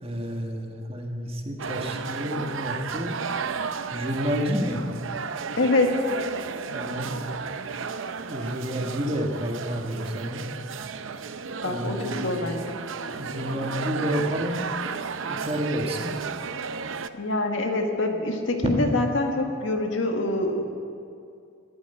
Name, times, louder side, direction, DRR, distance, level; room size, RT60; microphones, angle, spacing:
voice 1, 0.0-3.1 3.9-4.8 6.7-7.2 8.3-10.5 11.6-12.3 13.1-14.7 15.3-16.2 18.6-18.7, equal, 30° right, 2 dB, 1.6 m, -29 dB
sound 1, 1.6-17.1, right 5 dB, 80° right, 0.6 m, -33 dB
voice 2, 5.6-6.1 11.6-12.8 17.1-20.6, left 2 dB, 75° left, 3 dB, 1.7 m, -25 dB
13.5 x 12.5 x 8.1 m, 2.5 s
head